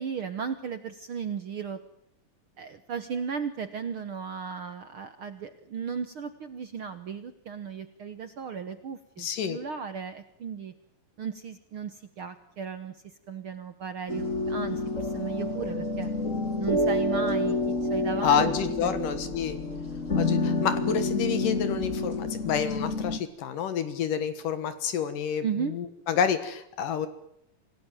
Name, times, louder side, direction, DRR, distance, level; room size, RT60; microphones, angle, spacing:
voice 1, 0.0-1.8 2.6-10.7 11.2-12.9 13.3-16.1 16.6-18.5 18.8-19.0 25.4-25.7, right 6 dB, 60° right, 10 dB, 1.4 m, -35 dB
voice 2, 9.2-9.6 18.2-19.6 20.2-27.1, left 7 dB, 75° left, 11 dB, 3.1 m, -29 dB
sound 1, 14.1-23.2, left 2 dB, 25° left, 2.2 m, -28 dB
26.5 x 17.0 x 9.2 m, 0.74 s
omnidirectional pair, 3.9 m